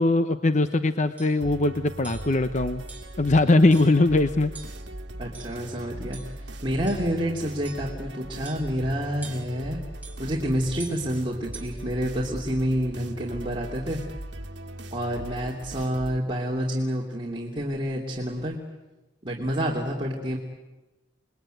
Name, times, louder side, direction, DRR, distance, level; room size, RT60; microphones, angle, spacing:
voice 1, 0.0-2.8 3.2-4.5, left 2 dB, 40° left, 10 dB, 0.9 m, -21 dB
sound 1, 0.7-0.8 1.2-1.4 2.0-2.3 2.9-3.2 3.7-4.0 4.5-4.9 5.3-5.7 6.1-6.4 6.9-7.2 7.6-7.9 8.4-8.8 9.2-9.6 10.0-10.2 10.8-11.1 11.5-11.8, right 4 dB, 10° right, 4.5 m, -45 dB
sound 2, 1.4-16.2, right 1 dB, 65° right, 1.9 m, -39 dB
voice 2, 5.2-9.8 10.2-14.0 14.9-18.6 19.2-20.4, equal, 25° right, -3 dB, 3.0 m, -28 dB
29.0 x 21.0 x 9.3 m, 1.1 s
head